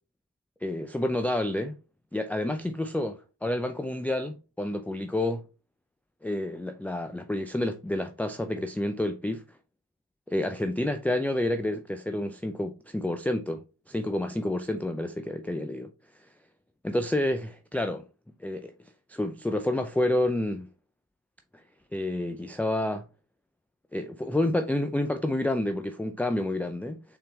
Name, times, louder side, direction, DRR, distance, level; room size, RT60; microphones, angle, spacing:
voice 1, 0.6-1.8 2.1-5.4 6.2-9.4 10.3-15.9 16.8-18.0 18.4-18.7 19.1-20.7 21.9-23.0 23.9-27.0, left 1 dB, 5° left, 0.4 m, -29 dB
4.0 x 3.9 x 3.2 m
cardioid pair, 40°, 43 cm